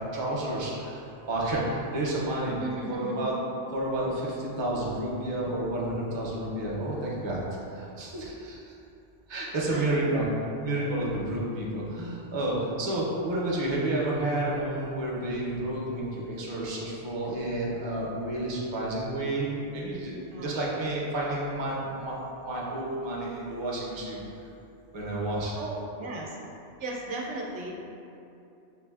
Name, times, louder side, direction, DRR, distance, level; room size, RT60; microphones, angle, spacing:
voice 1, 0.0-2.5 2.9-3.3 3.7-7.4 7.7-8.8 9.3-10.2 10.6-24.2 24.9-25.6, right 1 dB, 35° right, -5 dB, 0.5 m, -30 dB
voice 2, 2.6-3.3 9.6-10.0 20.3-20.5 25.6-26.4 26.8-27.7, right 2 dB, 85° right, -2 dB, 0.9 m, -36 dB
5.8 x 2.5 x 2.3 m, 2.7 s
omnidirectional pair, 1.2 m